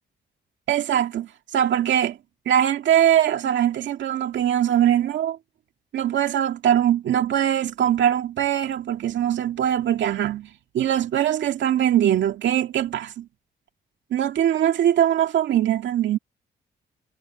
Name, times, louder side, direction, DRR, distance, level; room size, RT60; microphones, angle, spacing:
voice 1, 0.7-2.2 2.5-5.4 5.9-10.5 10.7-13.3 14.1-16.2, right 10 dB, 80° right, 2.1 m, -21 dB
cardioid pair, 80°, 19 cm